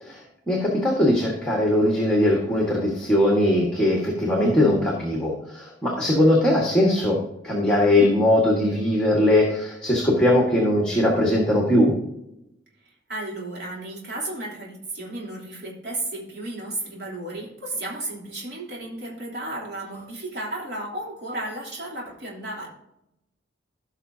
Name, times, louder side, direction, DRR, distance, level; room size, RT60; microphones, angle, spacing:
voice 1, 0.0-7.2 7.4-11.9, left 1 dB, 5° left, -2 dB, 1.6 m, -20 dB
voice 2, 12.8-22.7, right 2 dB, 60° right, -4 dB, 3.4 m, -33 dB
16.5 x 5.8 x 2.8 m, 0.84 s
head